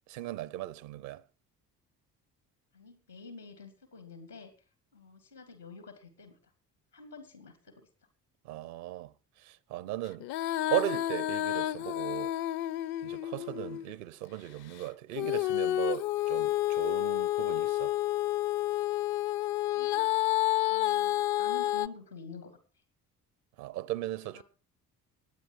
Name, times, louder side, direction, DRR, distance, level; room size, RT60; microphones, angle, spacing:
voice 1, 0.1-1.2 8.4-10.3 10.7-12.4 13.0-17.9 23.6-24.4, right 15 dB, 65° right, 0.9 m, -37 dB
voice 2, 2.7-4.5 4.9-6.5 6.9-7.9 13.6-13.8 19.7-20.1 20.7-22.6 24.3-24.4, left 4 dB, 90° left, 2.7 m, -48 dB
Female singing, 10.2-14.0 15.2-21.9, left 15 dB, 55° left, 0.7 m, -30 dB
18.5 x 9.3 x 4.7 m
figure-of-eight pair, 45°, 47 cm